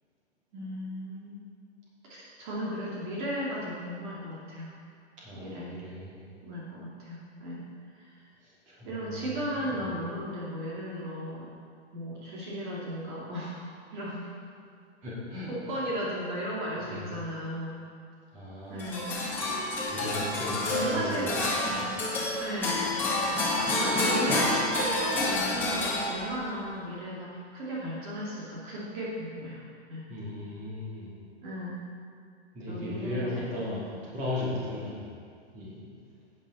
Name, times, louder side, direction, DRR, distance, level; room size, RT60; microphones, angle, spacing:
voice 1, 0.5-1.5 2.1-4.7 5.3-5.7 6.4-7.6 7.9-8.2 8.8-11.5 11.9-13.6 13.9-14.2 15.5-17.8 18.7-19.1 20.7-21.3 22.4-22.8 23.6-29.6 29.9-30.0 31.4-31.9 32.7-34.2, equal, 45° right, -6 dB, 2.3 m, -35 dB
voice 2, 5.2-6.2 8.4-10.0 15.0-15.5 16.8-17.1 18.3-18.8 19.9-21.3 21.7-21.9 30.1-31.1 32.5-33.8 34.1-35.1 35.5-35.9, left 1 dB, 20° right, -8 dB, 2.8 m, -37 dB
sound 1, 18.8-26.5, left 2 dB, 5° left, 1.6 m, -28 dB
11.0 x 9.3 x 4.1 m, 2.2 s
hypercardioid pair, 170°, 34 cm